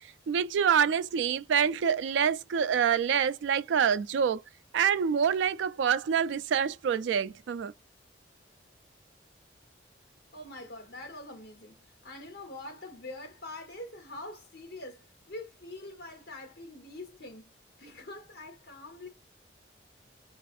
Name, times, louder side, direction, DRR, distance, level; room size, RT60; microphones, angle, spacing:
voice 1, 0.3-4.4 4.7-7.7, right 7 dB, 85° right, 0.3 m, -26 dB
voice 2, 10.3-17.5 17.8-19.1, left 2 dB, 60° left, 1.1 m, -44 dB
2.4 x 2.3 x 2.6 m
head